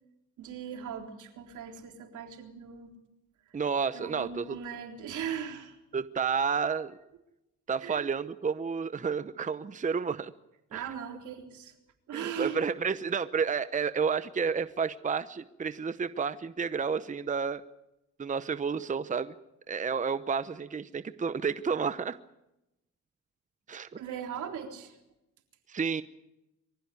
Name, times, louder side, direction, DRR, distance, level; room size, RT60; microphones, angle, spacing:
voice 1, 0.4-2.9 3.9-5.8 7.8-8.1 10.7-11.7 12.1-12.6 23.9-25.0, right 8 dB, 75° right, 4 dB, 3.8 m, -39 dB
voice 2, 3.5-4.6 5.9-7.0 7.7-10.3 10.7-10.8 12.1-17.6 18.2-19.3 19.7-22.2 23.7-24.0 25.7-26.0, right 6 dB, 25° right, 13 dB, 0.8 m, -31 dB
23.5 x 15.5 x 9.6 m, 0.90 s
cardioid pair, 90°, 30 cm